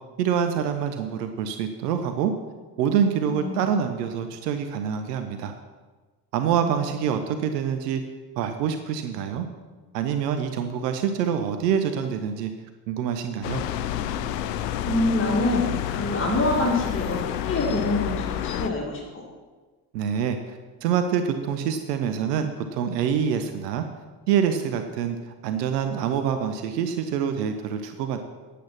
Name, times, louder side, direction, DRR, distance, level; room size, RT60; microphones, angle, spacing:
voice 1, 0.2-2.3 2.8-5.5 6.3-8.0 8.4-9.5 9.9-12.5 12.9-13.6 19.9-23.8 24.3-28.2, right 8 dB, 80° right, 7 dB, 0.7 m, -26 dB
voice 2, 3.3-3.6 6.4-6.7 14.8-19.2, left 2 dB, 25° left, -3 dB, 2.4 m, -26 dB
sound 1, 13.4-18.7, left 10 dB, 85° left, 0.5 m, -29 dB
10.0 x 8.3 x 5.8 m, 1.3 s
figure-of-eight pair, 45°, 48 cm